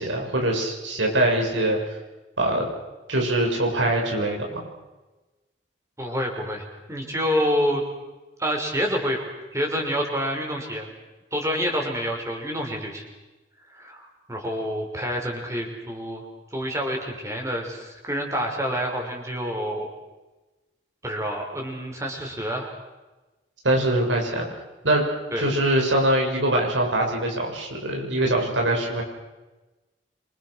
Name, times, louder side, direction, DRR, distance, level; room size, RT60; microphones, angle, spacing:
voice 1, 0.0-1.8 2.4-2.7 3.1-4.6 23.6-24.5 24.8-25.1 25.4-29.0, right 1 dB, 80° right, 1 dB, 7.3 m, -23 dB
voice 2, 6.0-6.6 6.9-7.8 8.4-9.2 9.5-10.9 11.3-13.0 13.7-16.2 16.5-19.9 21.0-22.7 25.3-25.4, equal, 15° right, 1 dB, 5.8 m, -27 dB
28.0 x 26.5 x 6.6 m, 1.1 s
head